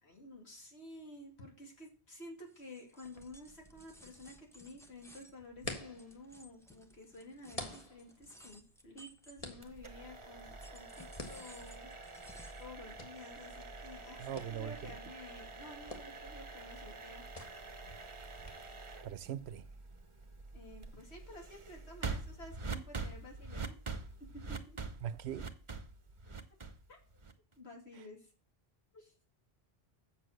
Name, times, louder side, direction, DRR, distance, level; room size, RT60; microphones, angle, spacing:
voice 1, 0.0-11.9 12.6-17.3 20.5-23.7 24.3-24.8 26.9-27.0 27.6-28.3 28.9-29.1, left 1 dB, 80° left, 2.7 m, -52 dB
sound 1, 2.5-9.9 10.4-12.7, equal, 5° left, 0.8 m, -59 dB
sound 2, 3.0-18.5, left 2 dB, 35° left, 1.6 m, -51 dB
sound 3, 9.6-27.5, right 4 dB, 30° right, 0.8 m, -46 dB
voice 2, 14.2-15.0 19.0-19.7 22.7-22.8 25.0-25.6, right 10 dB, 80° right, 0.9 m, -41 dB
7.7 x 5.9 x 6.4 m
omnidirectional pair, 1.1 m